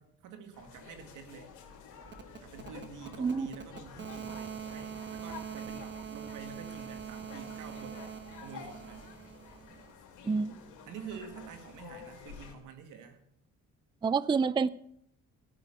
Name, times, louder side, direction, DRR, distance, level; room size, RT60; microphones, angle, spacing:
voice 1, 0.0-1.5 2.4-8.1 8.4-9.1 10.9-13.2, right 6 dB, 85° right, 7 dB, 1.9 m, -48 dB
sound 1, 0.5-12.5, left 6 dB, 90° left, 2.8 m, -51 dB
sound 2, 2.0-9.9, right 8 dB, 40° right, 1.3 m, -44 dB
voice 2, 10.3-10.6 14.0-14.7, right 5 dB, 15° right, 19 dB, 0.4 m, -27 dB
13.0 x 6.8 x 7.8 m, 0.71 s
cardioid pair, 90°, 30 cm